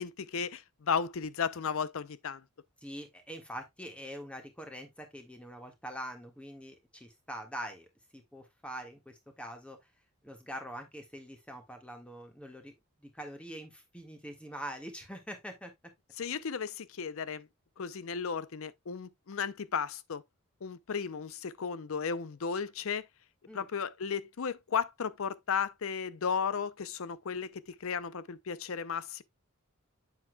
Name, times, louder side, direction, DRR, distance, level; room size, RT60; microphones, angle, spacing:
voice 1, 0.0-2.4 16.2-17.5 17.8-20.2 20.6-23.1 23.5-29.2, left 6 dB, 70° left, 0.5 m, -34 dB
voice 2, 2.8-7.9 8.1-9.8 10.2-12.7 13.0-15.7 23.5-23.6, equal, 5° left, 1.6 m, -44 dB
8.1 x 7.2 x 2.2 m
head